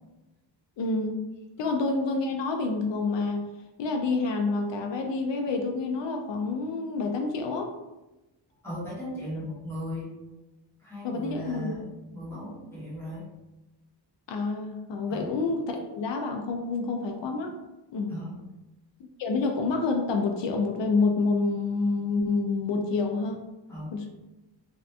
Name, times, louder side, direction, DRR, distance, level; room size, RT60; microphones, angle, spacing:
voice 1, 0.8-1.2 1.6-3.5 3.8-7.7 11.0-11.7 14.3-17.6 17.9-18.2 19.2-23.4 23.9-24.1, left 3 dB, 70° left, 3 dB, 0.5 m, -28 dB
voice 2, 8.6-10.1 10.8-13.3 15.1-15.3 18.1-18.3 23.7-24.0, equal, 5° left, -9 dB, 1.0 m, -37 dB
2.8 x 2.4 x 3.3 m, 1.0 s
wide cardioid pair, 155°, 46 cm